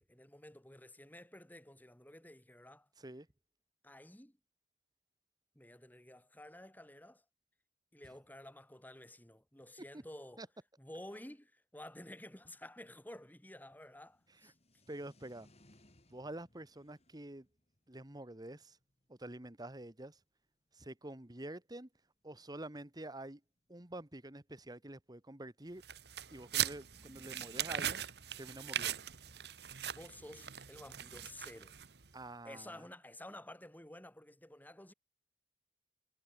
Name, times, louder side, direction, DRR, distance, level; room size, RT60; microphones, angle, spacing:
voice 1, 0.0-2.9 3.8-4.4 5.6-7.2 7.9-10.4 10.8-14.5 29.8-31.7 32.5-34.9, left 1 dB, 10° left, 3.9 m, -52 dB
sound 1, 14.1-20.2 20.9-21.0 21.1-21.2 21.4-21.6 22.5-22.6 22.9-23.0 23.8-25.3 26.7-29.4 30.8-31.3, left 1 dB, 40° left, 6.1 m, -68 dB
voice 2, 14.9-15.5 16.1-17.5 17.9-18.8 19.1-20.2 20.7-21.9 22.2-23.4 23.7-25.8 26.3-28.0 28.4-29.0 32.1-32.8, right 1 dB, 25° right, 1.6 m, -47 dB
sound 2, 25.8-32.1, right 10 dB, 65° right, 1.8 m, -40 dB
head